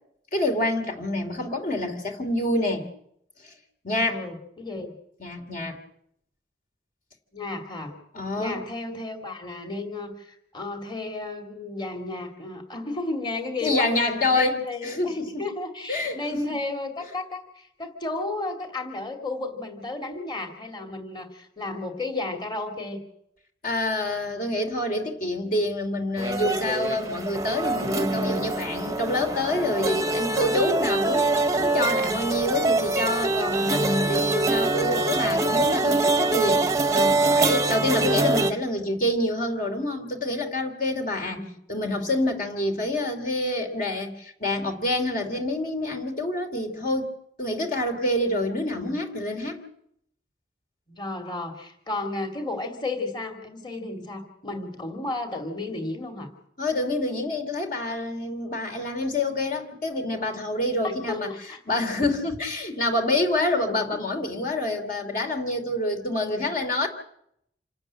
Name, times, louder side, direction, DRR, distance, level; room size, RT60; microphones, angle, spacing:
voice 1, 0.3-2.9 3.4-3.5 3.8-4.2 5.2-5.8 8.1-8.6 13.6-15.5 15.9-16.4 23.6-41.4 41.7-47.1 47.4-49.6 56.6-61.3 61.7-66.9, left 1 dB, 50° left, 5 dB, 2.9 m, -27 dB
voice 2, 4.0-4.9 7.3-8.0 8.4-23.0 41.1-41.5 50.9-56.3 60.8-61.8, left 2 dB, 25° left, 3 dB, 2.7 m, -33 dB
sound 1, 26.2-38.5, right 2 dB, 20° right, 0.9 m, -24 dB
27.0 x 13.0 x 8.9 m, 0.73 s
head